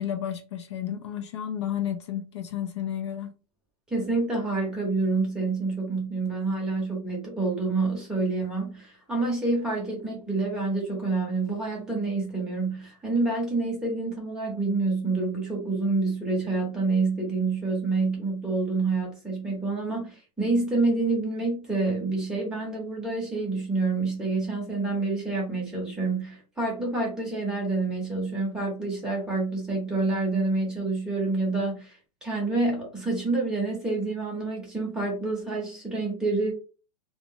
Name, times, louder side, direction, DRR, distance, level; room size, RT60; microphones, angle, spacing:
voice 1, 0.0-3.3, left 10 dB, 50° left, 0.4 m, -32 dB
voice 2, 3.9-36.5, right 3 dB, 5° right, 0.8 m, -27 dB
2.3 x 2.0 x 3.6 m
supercardioid pair, 170°, 18 cm